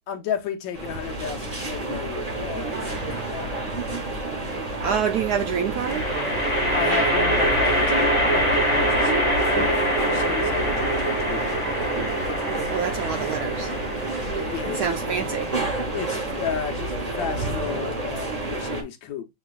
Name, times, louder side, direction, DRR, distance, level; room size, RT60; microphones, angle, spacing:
voice 1, 0.1-2.8 3.1-3.9 4.5-4.9 6.7-11.5 14.3-15.1 15.9-19.3, left 8 dB, 80° left, 1.5 m, -33 dB
sound 1, 0.7-18.8, right 2 dB, 30° right, 0.8 m, -29 dB
sound 2, 2.7-3.3 5.8-17.2, right 1 dB, 20° left, 1.0 m, -25 dB
voice 2, 4.8-6.1 12.7-13.7 14.7-15.5, right 7 dB, 75° right, 0.9 m, -27 dB
6.5 x 3.0 x 2.3 m
omnidirectional pair, 2.1 m